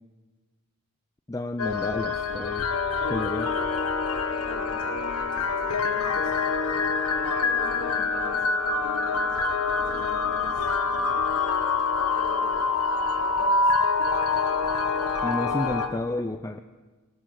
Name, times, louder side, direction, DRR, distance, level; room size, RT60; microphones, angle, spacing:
voice 1, 1.3-2.7 3.1-3.5 15.2-16.6, left 1 dB, 15° left, 8 dB, 0.4 m, -31 dB
sound 1, 1.6-15.9, left 4 dB, 85° left, 1.3 m, -26 dB
voice 2, 4.3-6.3 7.4-11.2 12.1-13.7, left 2 dB, 40° left, -2 dB, 3.9 m, -44 dB
19.5 x 11.5 x 6.2 m, 1.3 s
head